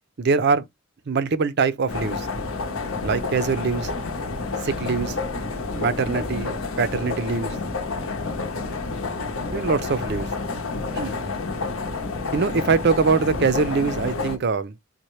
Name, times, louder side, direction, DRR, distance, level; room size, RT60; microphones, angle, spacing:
voice 1, 0.2-0.6 1.1-2.3 3.0-3.9 4.6-5.2 5.7-7.6 9.5-10.3 10.9-11.2 12.3-14.7, right 4 dB, 50° right, 0.5 m, -23 dB
sound 1, 1.9-14.4, left 3 dB, 70° left, 0.8 m, -29 dB
4.2 x 2.2 x 3.0 m
head